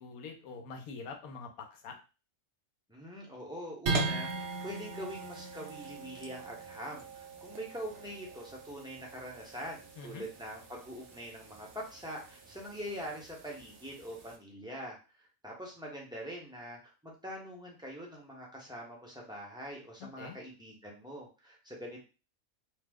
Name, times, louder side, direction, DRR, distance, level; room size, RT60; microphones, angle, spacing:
voice 1, 0.0-2.0 10.0-10.2 20.2-20.4, left 4 dB, 85° left, 4 dB, 1.1 m, -45 dB
voice 2, 2.9-15.0 15.4-22.0, equal, 5° right, -3 dB, 0.5 m, -44 dB
sound 1, 3.9-14.4, right 3 dB, 60° right, 0.6 m, -40 dB
2.8 x 2.0 x 3.4 m, 0.32 s
omnidirectional pair, 1.5 m